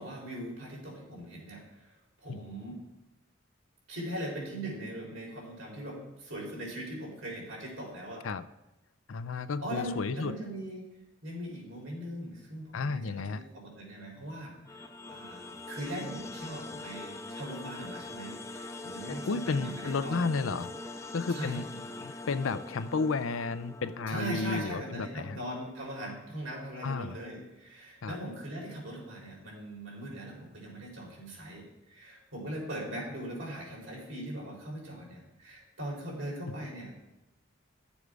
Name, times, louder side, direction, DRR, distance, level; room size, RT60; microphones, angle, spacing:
voice 1, 0.0-1.9 2.2-2.8 3.9-8.2 9.6-10.8 11.2-20.3 21.3-21.8 24.1-36.9, right 1 dB, 80° right, -2 dB, 3.9 m, -40 dB
voice 2, 9.1-10.3 12.7-13.4 19.1-20.7 21.1-21.6 22.0-25.4 26.8-27.2 28.0-28.2, left 4 dB, 90° left, 12 dB, 0.6 m, -32 dB
sound 1, 14.6-25.7, left 2 dB, 15° left, 0.5 m, -43 dB
11.5 x 7.1 x 4.8 m, 0.92 s
head